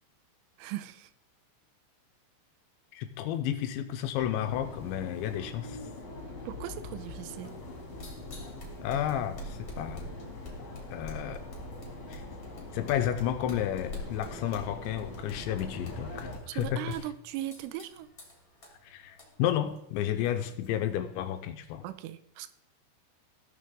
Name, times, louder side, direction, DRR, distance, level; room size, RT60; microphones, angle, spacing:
voice 1, 0.6-1.1 6.5-7.6 16.5-18.1 21.8-22.5, right 13 dB, 85° right, 13 dB, 3.2 m, -38 dB
voice 2, 2.9-5.8 8.8-10.1 10.9-11.4 12.1-12.2 12.7-16.8 18.8-21.8, left 11 dB, 80° left, 8 dB, 2.8 m, -32 dB
sound 1, 4.2-16.4, left 2 dB, 40° left, 2.6 m, -43 dB
sound 2, 7.6-21.4, left 1 dB, 25° left, 2.3 m, -47 dB
18.5 x 6.7 x 3.7 m, 0.77 s
omnidirectional pair, 5.6 m